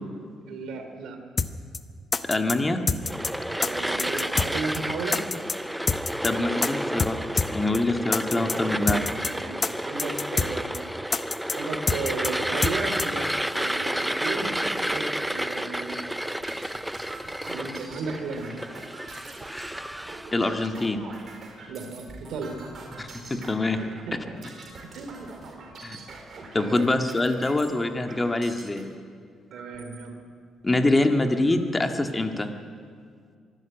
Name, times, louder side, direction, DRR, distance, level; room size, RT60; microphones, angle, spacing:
voice 1, 0.5-1.2 3.6-5.2 8.3-9.1 9.3-10.7 11.5-13.3 13.5-16.0 17.4-18.5 21.7-22.6 23.8-24.2 24.8-25.7 26.6-26.8 29.5-30.2, right 4 dB, 80° right, 5 dB, 3.0 m, -35 dB
sound 1, 1.4-1.5 1.7-1.8 2.1-2.6 2.9-3.3 3.6-3.7 4.0-4.5 4.7-4.8 5.1-5.6 5.9-6.3 6.6-6.7 7.0-7.1 7.4-7.5 7.7-7.8 8.1-8.6 8.9-9.3 9.6-9.7 10.0-10.5 10.7-10.8 11.1-11.6 11.9-12.3 12.6-12.7 13.0-13.1, left 4 dB, 35° left, 0.9 m, -25 dB
voice 2, 2.3-2.8 6.2-7.2 7.5-9.0 20.3-21.0 23.0-23.8 25.8-26.0 26.5-28.9 30.6-32.5, left 2 dB, 20° left, 5 dB, 1.8 m, -24 dB
sound 2, 3.0-20.3, equal, 5° right, 0.5 m, -31 dB
sound 3, 16.0-28.8 29.5-30.0 30.6-30.7 31.0-31.6, right 3 dB, 50° right, 4.3 m, -44 dB
24.5 x 12.5 x 9.1 m, 2.1 s
cardioid pair, 90°, 0 cm